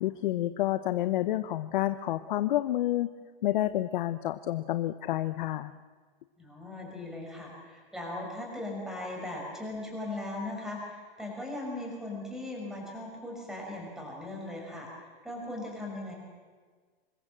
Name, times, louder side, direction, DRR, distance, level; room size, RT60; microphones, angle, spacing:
voice 1, 0.0-3.1 3.4-5.7, left 14 dB, 55° left, 12 dB, 0.9 m, -29 dB
voice 2, 6.4-16.1, left 2 dB, ahead, -1 dB, 5.9 m, -38 dB
26.0 x 21.0 x 7.6 m, 1.5 s
hypercardioid pair, 160°, 30 cm